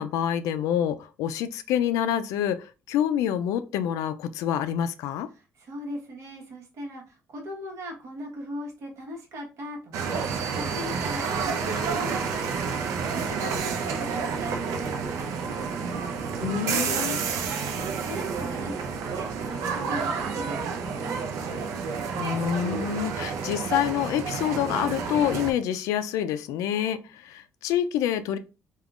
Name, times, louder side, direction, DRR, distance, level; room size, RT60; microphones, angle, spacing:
voice 1, 0.0-5.3 16.4-17.2 22.2-28.4, left 10 dB, 90° left, 0.3 m, -27 dB
voice 2, 5.3-12.8 13.1-16.0 16.7-21.6, equal, 65° right, 1.1 m, -39 dB
sound 1, 9.9-25.5, right 5 dB, 85° right, 0.5 m, -30 dB
3.5 x 2.3 x 2.4 m
cardioid pair, 140°, 5 cm